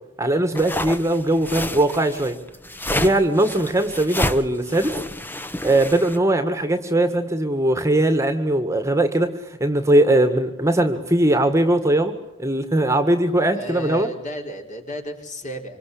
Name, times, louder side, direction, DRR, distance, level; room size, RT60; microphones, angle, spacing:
voice 1, 0.2-2.4 2.9-5.0 5.6-9.3 9.6-14.1, right 1 dB, 15° right, 8 dB, 1.8 m, -20 dB
sound 1, 0.5-6.2, left 1 dB, 10° left, 1.1 m, -29 dB
voice 2, 13.5-15.8, equal, 40° left, 3 dB, 4.5 m, -33 dB
26.0 x 25.0 x 8.5 m, 0.89 s
head